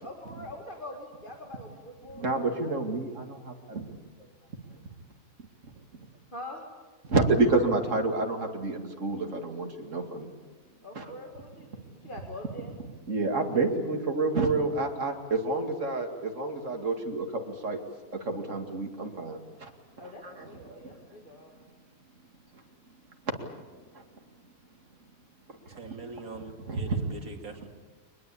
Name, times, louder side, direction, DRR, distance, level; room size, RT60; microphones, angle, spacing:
voice 1, 0.0-2.7 3.0-3.3 6.3-6.6 10.8-12.7 20.0-21.5, left 1 dB, 35° left, 1 dB, 2.2 m, -44 dB
voice 2, 2.1-3.8 7.1-10.3 10.9-11.1 13.1-17.8 18.1-19.7 20.0-20.8 23.3-23.4 26.7-27.0, right 3 dB, 60° right, 4 dB, 2.7 m, -29 dB
voice 3, 25.7-27.7, right 2 dB, 80° right, 3 dB, 2.9 m, -42 dB
23.5 x 20.5 x 8.6 m, 1.4 s
omnidirectional pair, 1.5 m